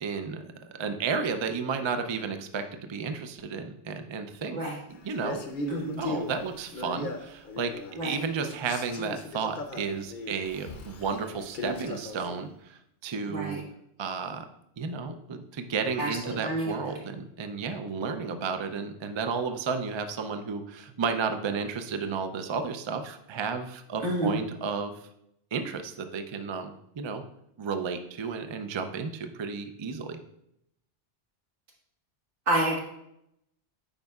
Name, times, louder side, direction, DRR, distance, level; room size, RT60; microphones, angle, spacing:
voice 1, 0.0-2.6 2.9-4.6 5.0-5.4 6.0-7.7 8.0-13.6 14.0-14.4 14.8-24.9 25.5-27.2 27.6-30.2, right 5 dB, 50° right, 7 dB, 0.3 m, -32 dB
Male speech man speaking, 5.1-8.1 8.4-12.5, left 2 dB, 50° left, 0.8 m, -38 dB
voice 2, 5.7-6.0 8.0-8.2 13.3-13.6 16.0-16.7 24.0-24.4 32.5-32.8, right 1 dB, 85° right, -3 dB, 2.0 m, -28 dB
8.9 x 5.3 x 2.3 m, 0.79 s
omnidirectional pair, 1.2 m